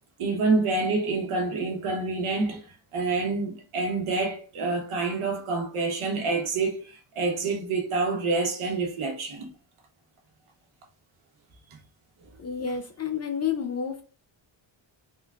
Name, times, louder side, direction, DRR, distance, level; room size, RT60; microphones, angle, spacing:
voice 1, 0.2-2.6 2.9-9.5, right 3 dB, 85° right, 1.2 m, -27 dB
voice 2, 12.4-14.0, left 7 dB, 35° left, 0.4 m, -30 dB
3.7 x 2.4 x 3.4 m
wide cardioid pair, 170°, 49 cm